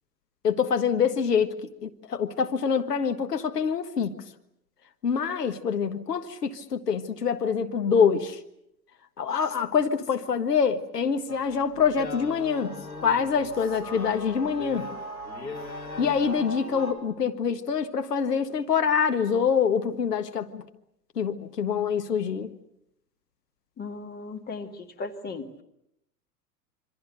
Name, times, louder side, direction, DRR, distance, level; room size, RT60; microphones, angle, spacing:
voice 1, 0.4-4.2 5.0-8.4 9.2-12.8 13.0-14.9 16.0-20.6 21.1-22.5, left 6 dB, 70° left, 7 dB, 1.6 m, -25 dB
sound 1, 11.3-16.9, left 1 dB, 85° left, 4.6 m, -38 dB
voice 2, 23.8-25.5, left 3 dB, 20° left, 6 dB, 2.2 m, -36 dB
27.0 x 25.0 x 6.7 m, 0.80 s
figure-of-eight pair, 95°, 50 cm